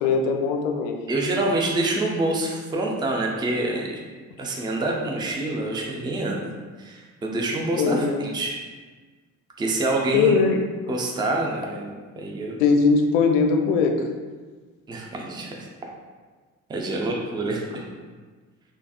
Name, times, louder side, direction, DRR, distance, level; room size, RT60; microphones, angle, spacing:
voice 1, 0.0-0.9 7.8-8.2 10.1-10.6 12.6-14.1, left 5 dB, 65° left, 4 dB, 0.5 m, -20 dB
voice 2, 1.1-4.0 4.4-6.5 6.8-8.6 9.6-10.4 10.9-12.6 14.9-15.7 16.7-17.8, right 2 dB, 10° right, -1 dB, 0.4 m, -26 dB
3.4 x 3.1 x 2.3 m, 1.4 s
figure-of-eight pair, 45°, 42 cm